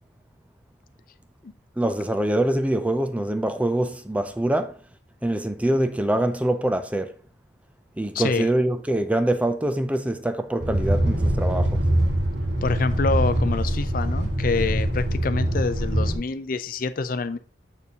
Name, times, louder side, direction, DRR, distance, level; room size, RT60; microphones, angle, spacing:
voice 1, 1.8-4.8 5.2-7.1 8.0-11.8, right 1 dB, 10° right, 0.4 m, -24 dB
voice 2, 8.1-8.5 12.6-17.4, left 4 dB, 50° left, 0.5 m, -26 dB
sound 1, 10.6-16.2, right 1 dB, 70° right, 1.8 m, -23 dB
6.9 x 6.7 x 2.8 m
head